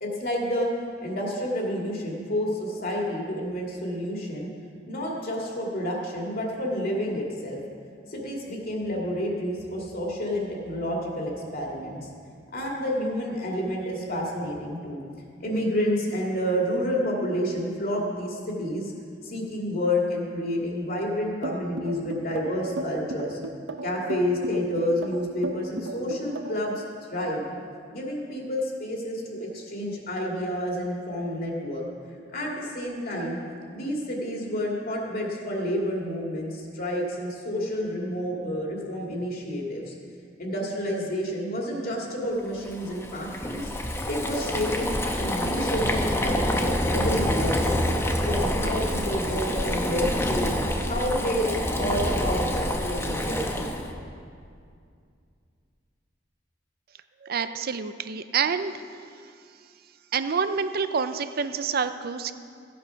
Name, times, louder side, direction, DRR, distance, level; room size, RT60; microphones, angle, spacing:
voice 1, 0.0-0.7 1.0-4.5 4.9-7.6 8.1-12.1 12.5-15.0 15.4-18.9 19.2-23.4 23.8-26.8 27.1-27.5 27.9-31.9 32.3-33.4 33.7-39.9 40.4-43.7 44.1-47.7 48.2-50.5 50.9-54.0, equal, 55° left, -2 dB, 2.2 m, -29 dB
sound 1, 21.4-26.7, right 2 dB, 80° right, 0.8 m, -34 dB
Boiling, 42.6-53.9, left 1 dB, 15° left, 1.0 m, -27 dB
voice 2, 57.2-58.7 60.1-62.3, right 6 dB, 55° right, 11 dB, 0.6 m, -27 dB
15.0 x 8.5 x 5.8 m, 2.3 s
head